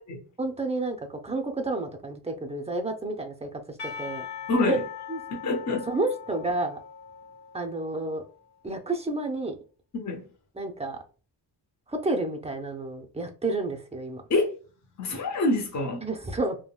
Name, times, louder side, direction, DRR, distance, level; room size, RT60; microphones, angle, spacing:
voice 1, 0.4-4.3 4.5-4.8 5.1-5.2 5.9-6.8 7.5-8.2 8.6-9.5 10.6-11.0 11.9-14.2 16.0-16.6, right 2 dB, 15° right, 0.5 m, -30 dB
Percussion / Church bell, 3.8-8.2, left 7 dB, 65° left, 1.0 m, -41 dB
voice 2, 4.5-4.8 5.3-5.9 9.9-10.3 14.3-14.5 15.0-16.0, left 2 dB, 40° left, 0.7 m, -26 dB
3.5 x 2.2 x 2.3 m
wide cardioid pair, 120°, 44 cm